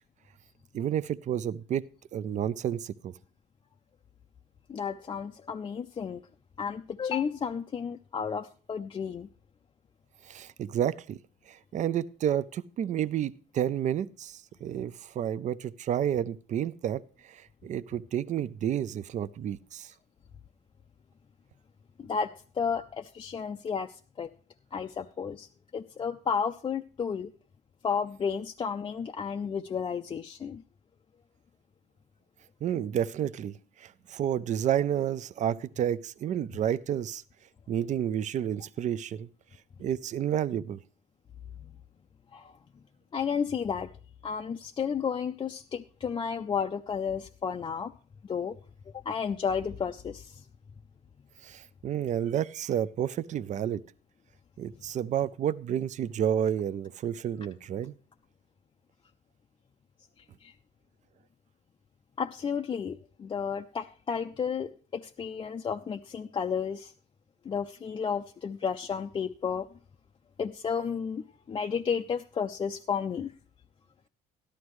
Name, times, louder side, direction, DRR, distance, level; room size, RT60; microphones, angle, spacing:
voice 1, 0.7-1.8 2.1-3.1 10.3-11.2 11.5-19.9 32.6-37.2 37.7-39.3 39.8-40.8 51.4-53.8 54.6-57.9, right 10 dB, 45° right, 17 dB, 0.4 m, -30 dB
voice 2, 4.7-6.2 6.6-9.3 22.0-24.3 24.7-25.5 25.7-27.3 27.8-30.6 42.3-42.5 43.1-43.9 44.2-47.9 48.2-48.5 49.1-50.4 60.4-60.5 62.2-66.9 67.4-69.7 70.4-73.3, left 6 dB, 30° left, 4 dB, 0.4 m, -32 dB
13.0 x 11.5 x 3.1 m, 0.39 s
cardioid pair, 110°, 17 cm